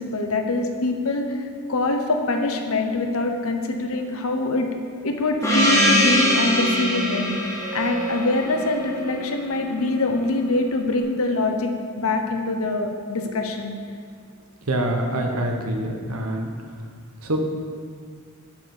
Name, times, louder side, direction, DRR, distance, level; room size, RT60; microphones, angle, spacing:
voice 1, 0.0-4.7 5.0-7.3 7.7-13.7, left 2 dB, 75° left, 4 dB, 1.0 m, -24 dB
Gong, 5.4-9.8, equal, 15° left, 1.6 m, -23 dB
voice 2, 14.7-16.5 17.2-17.4, right 1 dB, 80° right, 3 dB, 1.1 m, -25 dB
7.5 x 6.5 x 6.9 m, 2.1 s
head